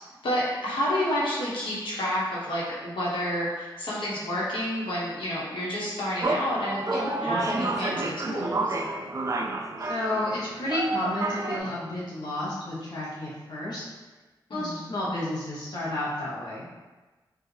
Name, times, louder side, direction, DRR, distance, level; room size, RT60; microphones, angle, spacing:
voice 1, 0.2-8.8 14.5-14.9, equal, 90° left, -7 dB, 1.1 m, -29 dB
sound 1, 6.2-11.6, right 2 dB, 40° right, 0.4 m, -30 dB
voice 2, 9.8-13.8 14.5-16.7, left 1 dB, 55° left, -7 dB, 0.9 m, -31 dB
4.8 x 2.4 x 3.2 m, 1.3 s
wide cardioid pair, 90°, 8 cm